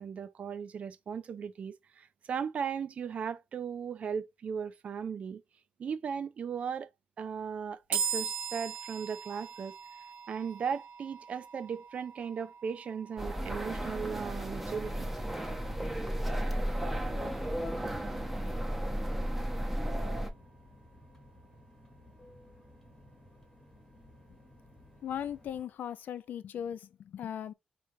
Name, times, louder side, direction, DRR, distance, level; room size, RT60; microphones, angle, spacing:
voice 1, 0.0-5.4 5.8-6.9 7.2-9.8 10.3-15.1, right 6 dB, 50° right, 0.4 m, -37 dB
sound 1, 7.9-21.3, right 6 dB, 85° right, 1.2 m, -42 dB
sound 2, 13.2-20.3, equal, 10° right, 0.6 m, -34 dB
sound 3, 15.6-25.6, left 1 dB, 15° left, 1.0 m, -56 dB
voice 2, 25.0-27.5, left 9 dB, 80° left, 0.4 m, -38 dB
4.6 x 3.0 x 2.6 m
wide cardioid pair, 155°, 3 cm